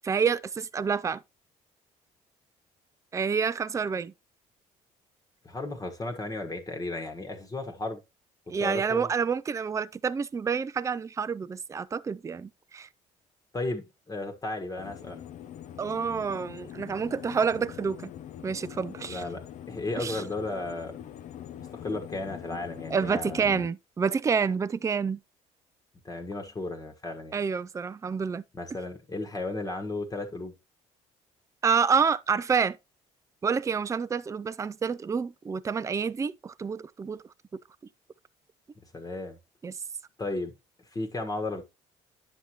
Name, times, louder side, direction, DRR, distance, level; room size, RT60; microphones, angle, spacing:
voice 1, 0.0-1.2 3.1-4.1 8.5-12.9 15.8-18.1 18.4-19.2 20.0-20.2 22.9-25.2 27.3-28.4 31.6-32.8 33.4-37.2 37.5-37.6 39.6-39.7, right 6 dB, 20° right, 0.4 m, -28 dB
voice 2, 5.4-8.0 8.6-9.1 13.5-15.2 19.1-21.0 21.6-23.5 26.0-27.4 28.5-30.5 38.9-39.4 40.2-40.5 40.9-41.6, left 2 dB, 25° left, 1.2 m, -34 dB
sound 1, 14.8-23.7, left 10 dB, 55° left, 0.5 m, -43 dB
9.2 x 6.1 x 2.9 m
supercardioid pair, 75°, 15 cm